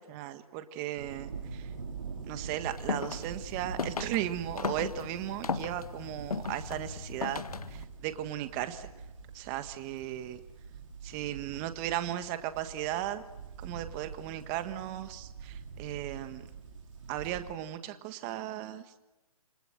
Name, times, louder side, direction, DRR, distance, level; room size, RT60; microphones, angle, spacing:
voice 1, 0.1-1.7 2.2-8.9 9.3-10.4 11.0-13.2 13.6-16.5 17.1-18.8, right 13 dB, 25° right, 10 dB, 1.5 m, -36 dB
sound 1, 1.0-17.5, right 5 dB, 55° right, 4.4 m, -45 dB
sound 2, 2.6-7.8, left 5 dB, 80° left, 1.4 m, -37 dB
28.0 x 23.5 x 7.7 m, 1.1 s
hypercardioid pair, 145°, 19 cm